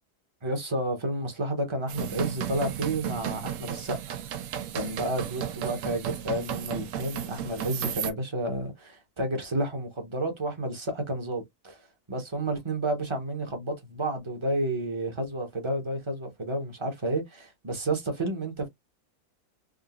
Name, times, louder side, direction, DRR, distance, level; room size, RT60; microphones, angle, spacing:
voice 1, 0.4-4.0 4.7-11.8 12.1-18.7, right 1 dB, 25° right, 0.8 m, -31 dB
sound 1, 1.9-8.1, right 10 dB, 65° right, 0.8 m, -34 dB
3.7 x 2.4 x 2.4 m
omnidirectional pair, 1.7 m